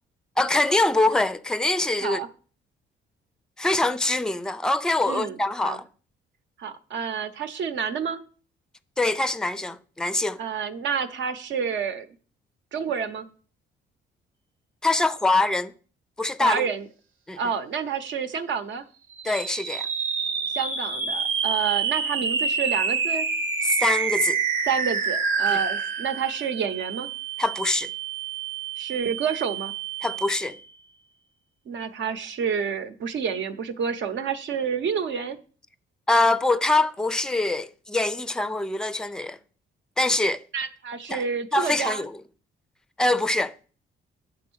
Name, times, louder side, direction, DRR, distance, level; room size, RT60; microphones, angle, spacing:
voice 1, 0.4-2.2 3.6-5.8 9.0-10.4 14.8-15.7 16.2-16.6 17.3-17.4 19.2-19.9 23.6-24.4 25.5-25.6 27.4-27.9 30.0-30.6 36.1-39.4 40.0-40.4 41.1-41.2 41.5-42.2 43.0-43.5, left 2 dB, 5° left, 0.4 m, -24 dB
voice 2, 5.1-5.8 6.6-8.2 10.4-12.1 12.7-13.3 16.4-16.9 17.4-18.8 20.6-23.3 24.7-27.1 28.8-29.7 31.7-35.4 40.5-42.1, right 6 dB, 70° right, 0.9 m, -29 dB
sound 1, 19.1-30.6, right 5 dB, 85° right, 1.1 m, -28 dB
8.6 x 3.5 x 6.2 m
cardioid pair, 90°, 20 cm